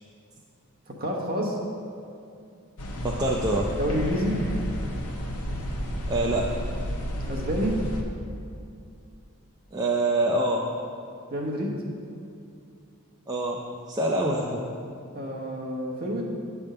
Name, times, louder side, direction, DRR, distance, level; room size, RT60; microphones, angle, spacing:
voice 1, 0.9-1.6 3.8-4.5 7.2-7.9 11.3-11.8 15.1-16.2, equal, 40° right, -3 dB, 1.1 m, -28 dB
sound 1, 2.8-8.0, equal, 85° left, 0.9 m, -31 dB
voice 2, 3.0-3.7 6.1-6.6 9.7-10.7 13.3-14.6, right 1 dB, 20° right, -3 dB, 0.4 m, -25 dB
8.6 x 3.5 x 6.6 m, 2.5 s
head